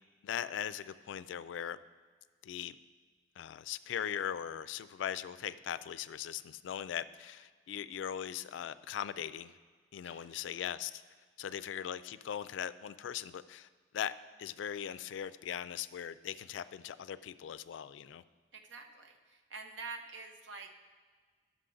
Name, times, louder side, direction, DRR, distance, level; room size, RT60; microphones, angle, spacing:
voice 1, 0.2-1.8 2.4-2.8 3.4-9.5 9.9-11.0 11.4-13.7 13.9-14.1 14.4-18.2, left 9 dB, 85° left, 14 dB, 0.3 m, -39 dB
voice 2, 10.0-10.4 18.5-20.7, right 4 dB, 90° right, 4 dB, 0.8 m, -47 dB
11.5 x 6.2 x 3.8 m, 1.5 s
head